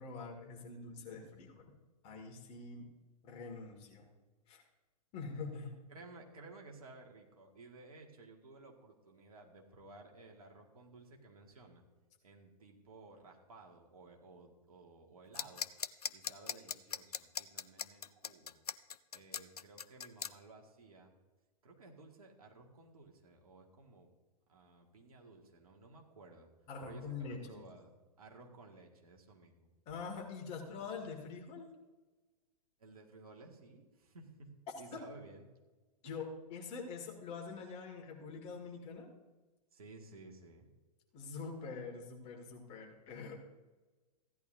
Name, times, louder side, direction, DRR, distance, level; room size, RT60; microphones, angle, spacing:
voice 1, 0.0-1.7 2.0-2.9 3.2-4.1 4.5-4.6 5.1-5.8 26.7-27.6 29.9-31.8 34.9-35.1 36.0-39.1 41.1-43.4, left 4 dB, 30° left, 2 dB, 2.2 m, -45 dB
voice 2, 5.9-11.8 12.2-15.7 16.1-18.6 19.1-21.1 21.6-24.1 24.5-26.5 26.8-29.7 32.8-35.5 36.0-36.1 39.7-40.7, right 3 dB, 65° right, 1 dB, 2.0 m, -56 dB
sound 1, 15.3-20.3, left 7 dB, 70° left, 0.5 m, -39 dB
15.5 x 10.5 x 2.7 m, 1.2 s
figure-of-eight pair, 105°, 20 cm